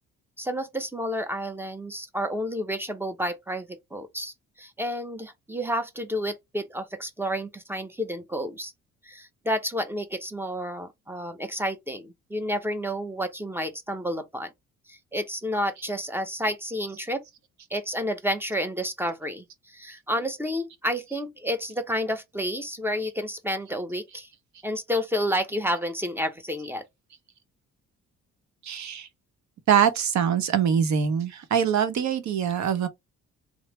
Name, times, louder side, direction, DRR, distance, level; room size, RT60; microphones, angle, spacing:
voice 1, 0.4-8.7 9.1-14.5 14.9-17.2 17.7-24.3 24.6-26.9, equal, 10° right, 0.6 m, -30 dB
voice 2, 28.6-29.1 29.7-32.9, right 8 dB, 65° right, 0.8 m, -23 dB
3.1 x 2.0 x 3.1 m
cardioid pair, 90°, 30 cm